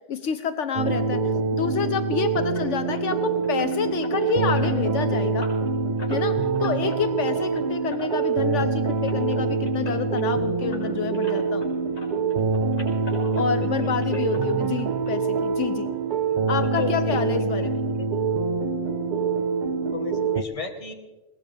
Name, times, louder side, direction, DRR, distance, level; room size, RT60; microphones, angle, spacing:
voice 1, 0.1-1.2 1.5-5.5 6.1-11.6 13.3-15.9 16.5-17.8, left 7 dB, 75° left, 9 dB, 1.1 m, -28 dB
sound 1, 0.8-20.4, right 4 dB, 45° right, 0.8 m, -25 dB
sound 2, 2.5-11.7 11.9-13.7 14.0-15.1 15.4-15.5 15.9-16.0 16.4-16.5, left 2 dB, 60° left, 6.1 m, -42 dB
voice 2, 13.1-14.2 16.3-17.3 17.6-18.1 19.9-20.9, left 3 dB, 30° left, 4 dB, 1.4 m, -36 dB
21.0 x 18.0 x 3.4 m, 1.1 s
omnidirectional pair, 1.3 m